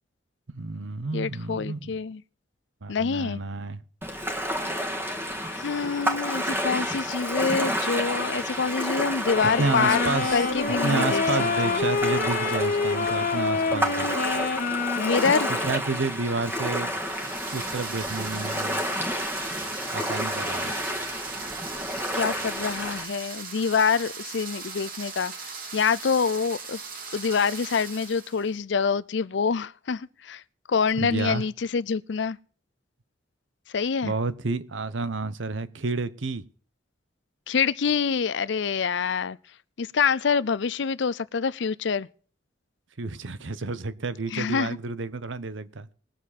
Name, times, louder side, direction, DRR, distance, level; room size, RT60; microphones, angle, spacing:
voice 1, 0.5-2.0 2.8-3.8 9.6-10.4 10.8-14.1 15.5-16.9 17.5-18.8 19.9-20.7 31.0-31.4 34.0-36.4 43.0-45.9, right 3 dB, 80° right, 0.9 m, -30 dB
voice 2, 1.1-2.2 2.9-3.4 5.5-11.2 11.6-11.9 15.0-15.5 22.1-26.8 27.1-30.4 30.7-32.4 33.7-34.1 37.5-39.4 39.8-42.1 44.3-44.8, left 5 dB, 65° left, 0.5 m, -26 dB
Ocean, 4.0-23.0, equal, 10° right, 1.7 m, -30 dB
sound 1, 9.3-15.9, left 4 dB, 45° left, 1.0 m, -27 dB
sound 2, 16.8-28.5, right 5 dB, 50° right, 2.4 m, -39 dB
20.5 x 7.4 x 4.2 m
head